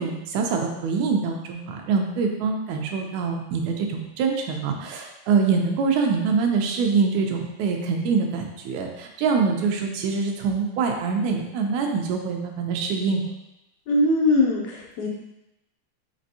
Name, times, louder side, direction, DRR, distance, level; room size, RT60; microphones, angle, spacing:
voice 1, 0.0-13.2, right 5 dB, 85° right, 2 dB, 2.0 m, -24 dB
voice 2, 13.9-15.1, left 2 dB, 75° left, -2 dB, 2.0 m, -21 dB
5.2 x 3.3 x 2.7 m, 0.90 s
omnidirectional pair, 3.3 m